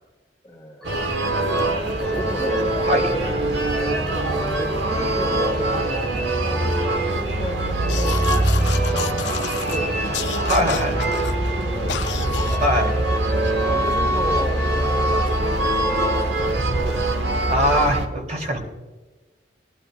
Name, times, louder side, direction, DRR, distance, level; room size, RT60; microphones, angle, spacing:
voice 1, 0.4-1.0 2.0-4.3 4.6-6.0 6.5-6.6 7.1-10.3 11.3-12.7 13.6-17.5, equal, 15° left, 2 dB, 1.4 m, -34 dB
sound 1, 0.8-17.2, equal, ahead, 1.6 m, -34 dB
sound 2, 0.8-18.1, right 1 dB, 75° right, 1.6 m, -23 dB
sound 3, 7.9-9.8 10.1-11.3 11.9-12.7, left 8 dB, 75° left, 0.6 m, -31 dB
voice 2, 10.5-11.0 12.6-13.1 17.5-18.6, equal, 45° right, 1 dB, 3.3 m, -21 dB
21.0 x 12.0 x 2.5 m, 1.2 s
head